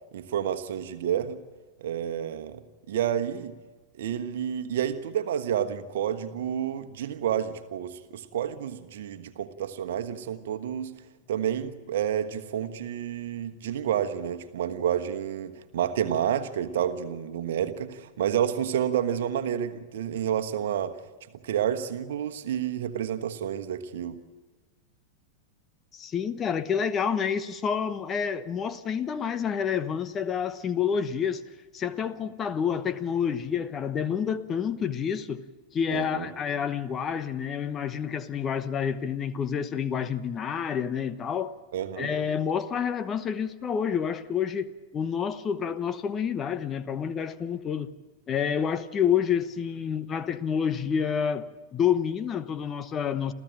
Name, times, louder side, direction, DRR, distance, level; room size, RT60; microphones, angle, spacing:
voice 1, 0.1-1.4 1.8-2.6 2.9-3.5 3.9-10.9 11.3-20.9 21.4-24.2 35.9-36.3 41.7-42.1, right 9 dB, 55° right, 1.3 m, -29 dB
voice 2, 25.9-31.4 31.7-35.4 35.7-41.6 42.0-47.9 48.3-53.3, left 7 dB, 25° left, 1.0 m, -28 dB
27.5 x 15.0 x 8.9 m
figure-of-eight pair, 90°, 0 cm